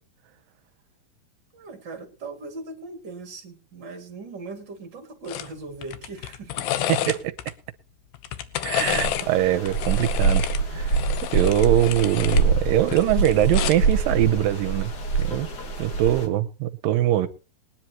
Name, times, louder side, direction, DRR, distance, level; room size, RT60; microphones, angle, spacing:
voice 1, 1.5-6.7, right 3 dB, 35° right, 2.5 m, -39 dB
sound 1, 5.3-5.5 5.8-7.5 8.1-9.3 9.7-12.5 12.8-13.9 15.1-15.3, left 12 dB, 80° left, 2.8 m, -30 dB
voice 2, 6.9-7.3 8.6-10.5 10.7-11.0 11.3-14.9 15.2-15.5 15.8-17.3, right 13 dB, 75° right, 2.5 m, -22 dB
sound 2, 8.8-16.3, right 4 dB, 45° left, 1.4 m, -25 dB
21.0 x 10.5 x 3.0 m
omnidirectional pair, 4.2 m